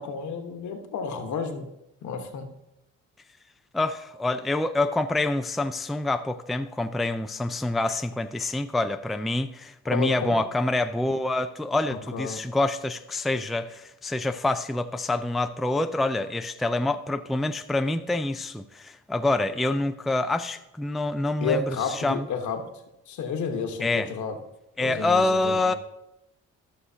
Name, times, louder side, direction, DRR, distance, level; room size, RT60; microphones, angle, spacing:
voice 1, 0.0-1.7 2.0-2.5 9.9-10.4 11.9-12.4 21.4-22.7 23.1-24.4 24.8-25.7, left 5 dB, 70° left, 5 dB, 1.2 m, -31 dB
voice 2, 3.7-22.3 23.8-24.1 24.8-25.7, left 2 dB, ahead, 8 dB, 0.3 m, -26 dB
13.5 x 6.4 x 2.8 m, 0.89 s
cardioid pair, 90°, 30 cm